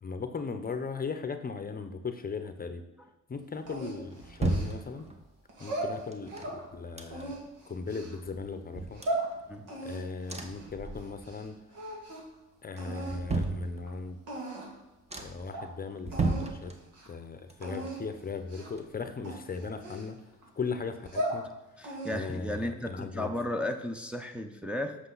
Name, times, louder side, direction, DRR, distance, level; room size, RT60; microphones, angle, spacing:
voice 1, 0.0-2.8 3.3-5.0 5.6-7.4 7.7-9.0 9.8-11.6 12.6-14.2 15.1-16.7 17.1-20.2 20.6-21.4 22.1-23.3, left 4 dB, 30° left, 9 dB, 0.7 m, -38 dB
sound 1, 3.7-5.4 6.1-7.5 7.9-8.0 8.2-9.9 10.3-11.5 11.8-12.3 12.7-14.2 14.7-14.8 15.1-15.6 16.0-17.2 17.5-19.3 19.6-19.7, right 3 dB, 20° right, 1.1 m, -35 dB
sound 2, 3.7-5.0 5.5-6.6 7.1-8.2 8.7-9.3 9.7-11.4 11.7-12.3 12.8-13.2 13.9-14.0 14.3-14.8 15.2-15.3 15.5-15.7 16.1-16.5 16.8-17.1 17.6-18.0 18.5-18.8 19.2-20.4 20.9-21.4 21.8-22.3, right 1 dB, 85° right, 2.4 m, -37 dB
voice 2, 21.8-25.0, left 1 dB, 5° right, 2 dB, 0.7 m, -34 dB
7.9 x 6.3 x 3.9 m, 1.0 s
cardioid pair, 90°, 30 cm